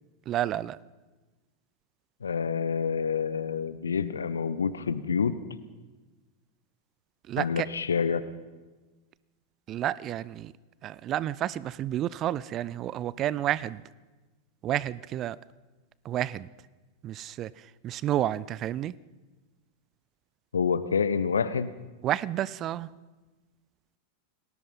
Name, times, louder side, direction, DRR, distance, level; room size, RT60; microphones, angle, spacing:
voice 1, 0.3-0.8 7.3-7.7 9.7-10.5 10.8-13.8 14.6-15.4 16.0-16.5 17.0-17.5 17.8-18.9 22.0-22.9, right 12 dB, 30° right, 0.6 m, -30 dB
voice 2, 2.2-5.4 7.4-8.2 20.5-21.7, left 6 dB, 70° left, 1.2 m, -27 dB
28.5 x 19.5 x 5.6 m
figure-of-eight pair, 90°, 0 cm